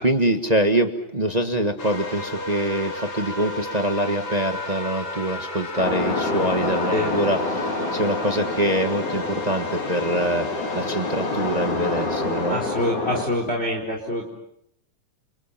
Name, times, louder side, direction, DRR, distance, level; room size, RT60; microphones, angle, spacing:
voice 1, 0.0-10.5 10.7-12.6, right 1 dB, 25° right, 5 dB, 0.8 m, -24 dB
sound 1, 1.8-12.7, left 1 dB, 50° left, 4.2 m, -33 dB
sound 2, 5.8-13.2, left 3 dB, 85° left, 5.7 m, -27 dB
voice 2, 12.5-14.2, left 1 dB, 20° left, 1 dB, 4.2 m, -25 dB
30.0 x 29.0 x 5.8 m, 0.75 s
omnidirectional pair, 3.3 m